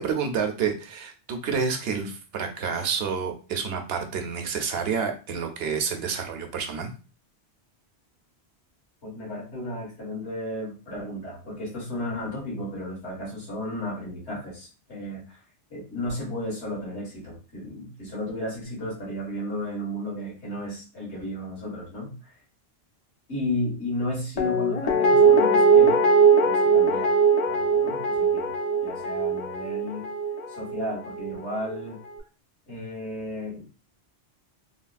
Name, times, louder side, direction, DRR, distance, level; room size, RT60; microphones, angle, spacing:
voice 1, 0.0-6.9, right 6 dB, 70° right, 5 dB, 0.8 m, -29 dB
voice 2, 9.0-15.4 15.7-22.3 23.3-26.0 26.4-28.5 28.8-30.1 30.5-32.0 32.7-33.7, left 1 dB, 80° left, -4 dB, 1.7 m, -34 dB
Guitar, 24.4-31.4 31.7-31.8, right 4 dB, 55° left, 0.4 m, -21 dB
3.4 x 2.3 x 2.4 m, 0.34 s
omnidirectional pair, 1.1 m